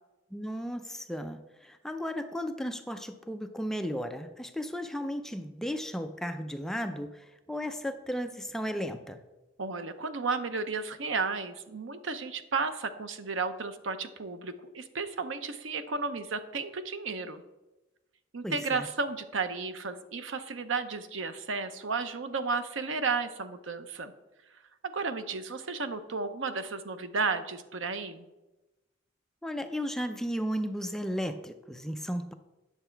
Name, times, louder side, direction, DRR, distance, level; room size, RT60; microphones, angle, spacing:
voice 1, 0.3-9.2 18.4-18.9 29.4-32.3, equal, ahead, 7 dB, 0.4 m, -35 dB
voice 2, 9.6-17.4 18.3-24.1 24.8-28.3, right 4 dB, 70° right, 10 dB, 0.7 m, -33 dB
9.9 x 6.8 x 4.5 m, 1.0 s
head